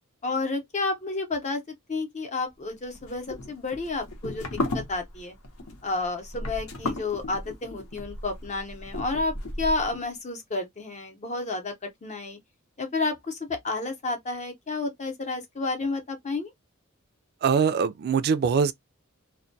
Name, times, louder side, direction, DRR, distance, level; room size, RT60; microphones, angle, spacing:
voice 1, 0.2-1.6 1.9-4.5 4.7-5.3 5.8-11.7 12.0-12.4 12.8-16.5, left 3 dB, 35° left, 0.7 m, -31 dB
sound 1, 3.0-10.0, left 2 dB, 75° left, 0.8 m, -34 dB
voice 2, 17.4-18.7, right 6 dB, 50° right, 0.3 m, -22 dB
2.2 x 2.2 x 2.6 m
head